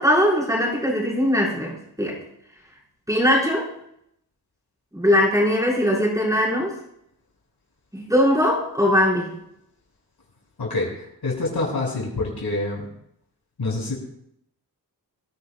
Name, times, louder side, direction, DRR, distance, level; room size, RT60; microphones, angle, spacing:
voice 1, 0.0-2.2 3.1-3.7 4.9-6.7 7.9-9.4, equal, 10° right, -6 dB, 5.9 m, -20 dB
voice 2, 10.6-10.9 11.2-12.9 13.6-14.0, left 2 dB, 70° left, -3 dB, 6.8 m, -26 dB
25.5 x 10.5 x 2.5 m, 0.74 s
wide cardioid pair, 80°, 40 cm